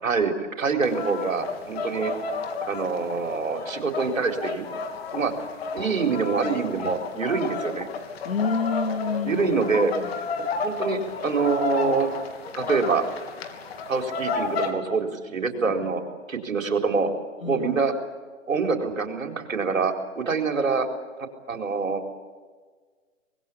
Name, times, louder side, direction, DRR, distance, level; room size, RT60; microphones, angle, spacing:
voice 1, 0.0-2.1 2.7-4.6 5.1-5.3 5.7-7.9 9.2-9.9 10.6-12.1 12.5-13.0 13.9-16.0 16.3-17.1 17.4-17.9 18.5-20.9 21.5-22.0, right 4 dB, 85° right, 5 dB, 4.4 m, -25 dB
sound 1, 0.8-14.7, left 4 dB, 50° left, 3.3 m, -32 dB
voice 2, 8.2-10.2 17.4-17.7, left 4 dB, 90° left, 7 dB, 3.3 m, -29 dB
25.0 x 20.5 x 8.7 m, 1.5 s
hypercardioid pair, 145°, 39 cm